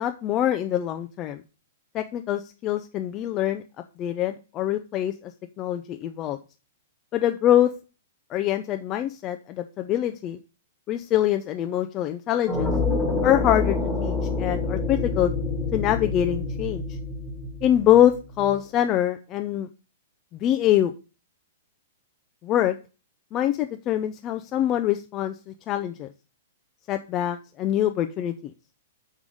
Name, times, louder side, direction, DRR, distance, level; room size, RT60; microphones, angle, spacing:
voice 1, 0.0-1.4 1.9-3.6 4.0-5.3 5.6-6.4 7.1-7.7 8.3-10.4 10.9-12.7 13.2-15.3 15.7-16.8 17.6-19.7 20.3-20.9 22.4-22.7 23.3-26.1 26.9-28.5, left 12 dB, 20° left, 7 dB, 0.4 m, -24 dB
sound 1, 12.5-18.3, left 3 dB, 5° left, 1.3 m, -27 dB
6.4 x 5.3 x 4.9 m, 0.33 s
hypercardioid pair, 175°, 0 cm